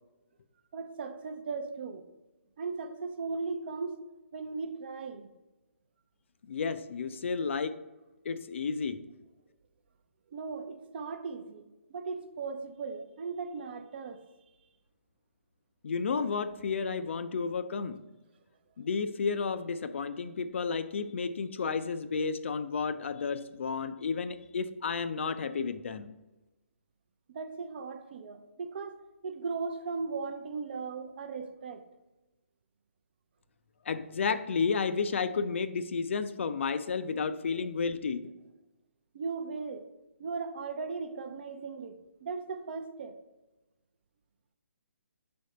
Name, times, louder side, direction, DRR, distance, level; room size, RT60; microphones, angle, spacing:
voice 1, 0.7-2.0 2.6-4.0 4.3-5.3 10.3-11.6 11.9-14.2 27.3-29.0 29.2-31.8 39.1-39.9 40.2-43.1, right 4 dB, 50° right, 0.5 m, -37 dB
voice 2, 6.5-7.8 8.3-9.0 15.8-18.0 18.8-26.1 33.9-38.3, left 5 dB, 60° left, 0.4 m, -32 dB
5.4 x 3.4 x 5.2 m
figure-of-eight pair, 140°, 7 cm